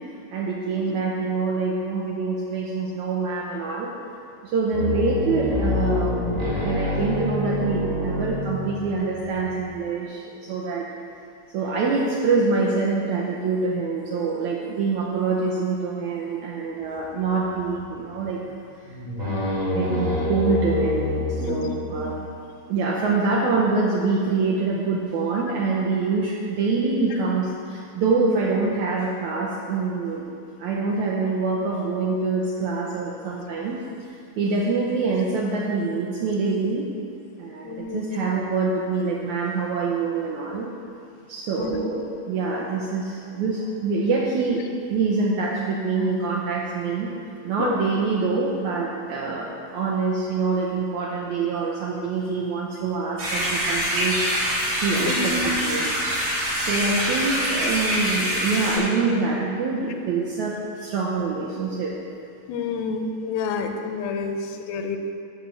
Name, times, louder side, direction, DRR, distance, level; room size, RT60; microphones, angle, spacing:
voice 1, 0.3-3.9 4.4-10.9 11.5-18.4 19.2-22.3 22.7-30.3 30.6-33.8 34.4-36.9 37.4-40.7 41.3-44.6 44.9-47.1 47.4-55.3 55.6-56.2 56.6-61.9, right 4 dB, 80° right, -3 dB, 1.7 m, -25 dB
sound 1, 4.7-9.7 17.3-17.9 18.2-18.3 18.8-22.3, left 2 dB, 5° right, 1.9 m, -27 dB
voice 2, 21.4-22.1 37.6-38.2 41.6-41.8 47.6-47.8 55.0-55.5 57.4-57.5 62.5-65.0, left 4 dB, 85° left, 5 dB, 2.5 m, -29 dB
sound 2, 53.2-58.8, equal, 45° right, 3.6 m, -25 dB
11.0 x 4.3 x 7.5 m, 2.5 s
omnidirectional pair, 4.2 m